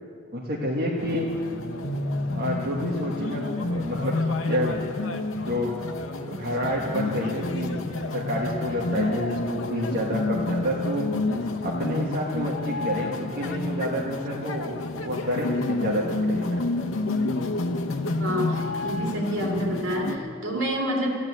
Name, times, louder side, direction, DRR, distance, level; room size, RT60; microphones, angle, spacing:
voice 1, 0.3-1.3 2.3-4.8 5.5-5.8 6.2-11.1 11.6-14.8 15.0-16.6, equal, 50° right, -4 dB, 1.5 m, -29 dB
sound 1, 1.0-20.2, left 2 dB, 80° left, 0.9 m, -29 dB
sound 2, 1.8-5.5, left 1 dB, ahead, 2.5 m, -36 dB
voice 2, 18.2-18.5 18.8-21.2, equal, 75° right, -1 dB, 3.0 m, -28 dB
13.5 x 10.5 x 8.5 m, 2.3 s
head